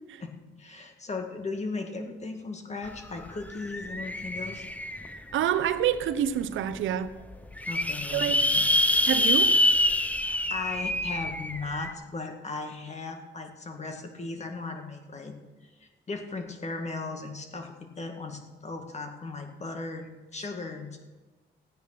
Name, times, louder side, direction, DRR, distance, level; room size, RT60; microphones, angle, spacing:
voice 1, 0.6-4.6 7.6-8.6 10.2-15.3 15.8-21.0, left 3 dB, 35° left, 2.0 m, -37 dB
sound 1, 2.9-3.0 3.2-5.3 5.9-6.0 6.4-6.5 6.7-6.8 7.3-11.9, left 1 dB, 5° left, 0.8 m, -26 dB
voice 2, 5.3-7.1 8.1-8.4 9.1-9.5, right 10 dB, 80° right, 0.8 m, -27 dB
14.5 x 9.3 x 6.1 m
cardioid pair, 90°, 20 cm